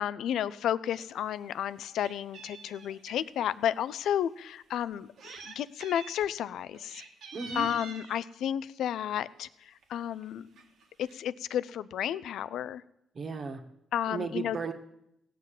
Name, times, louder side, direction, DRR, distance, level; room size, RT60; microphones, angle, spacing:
voice 1, 0.0-7.0 7.5-10.5 11.0-12.8 13.9-14.6, left 10 dB, 75° left, 16 dB, 0.5 m, -32 dB
Meow, 0.9-1.0 1.4-3.2 3.9-4.0 4.9-5.5 5.8-6.3 6.7-8.2 9.2-9.4 9.8-9.9 10.1-10.2 10.5-11.2, right 5 dB, 75° right, 1.9 m, -47 dB
voice 2, 7.3-7.7 13.2-13.6 14.1-14.7, right 4 dB, 45° right, 5 dB, 1.8 m, -35 dB
17.0 x 5.9 x 9.1 m, 0.81 s
cardioid pair, 90°, 0 cm